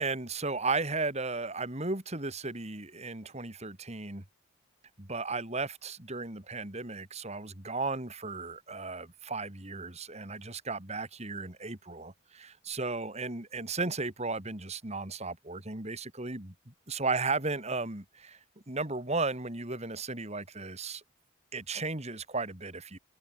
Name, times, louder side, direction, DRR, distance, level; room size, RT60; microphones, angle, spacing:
voice 1, 0.0-4.2 5.0-18.4 18.7-21.0 21.5-23.0, right 3 dB, 30° right, 2.7 m, -35 dB
head